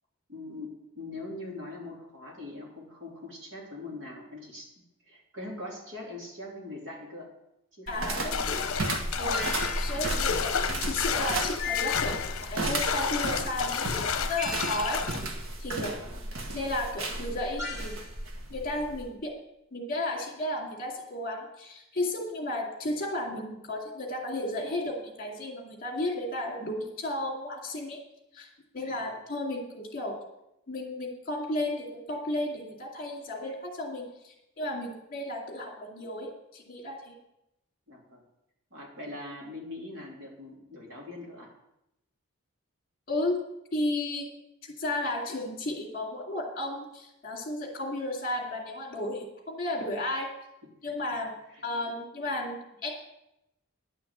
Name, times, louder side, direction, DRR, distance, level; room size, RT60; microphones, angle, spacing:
voice 1, 0.3-4.7 5.0-7.3 7.7-8.6 9.1-9.4 16.0-16.2 28.8-29.2 37.9-38.2 38.7-41.5 50.8-50.9 51.5-51.6, left 2 dB, 60° right, -2 dB, 3.1 m, -42 dB
voice 2, 7.9-8.4 9.2-9.5 9.8-15.0 15.6-16.0 16.5-17.9 18.5-19.3 19.7-28.0 28.3-28.5 28.7-30.2 30.7-37.2 43.1-43.4 43.7-44.3 44.6-50.3 50.8-51.3 51.6-52.9, left 1 dB, 40° left, -1 dB, 2.4 m, -33 dB
sound 1, 7.9-19.1, right 2 dB, 75° right, 1.5 m, -34 dB
sound 2, 8.3-15.2, left 6 dB, 70° left, 0.8 m, -31 dB
sound 3, 9.3-10.3 11.6-12.5 14.4-15.3 17.6-18.1, left 6 dB, 15° right, 3.4 m, -36 dB
10.5 x 5.8 x 7.9 m, 0.87 s
head